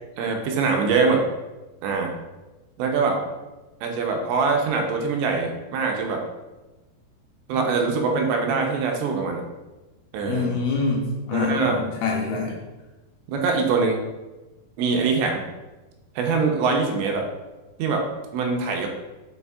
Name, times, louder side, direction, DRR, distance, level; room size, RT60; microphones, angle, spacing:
voice 1, 0.2-1.2 1.8-2.1 2.8-3.2 3.8-6.2 7.5-9.4 10.1-10.5 11.3-11.8 12.3-12.5 13.3-14.0 14.8-15.4 16.2-17.3 17.8-18.1 18.3-18.9, right 4 dB, 80° right, 2 dB, 2.9 m, -23 dB
voice 2, 10.3-12.5, left 4 dB, 80° left, -2 dB, 2.4 m, -25 dB
8.1 x 5.0 x 2.4 m, 1.1 s
omnidirectional pair, 5.2 m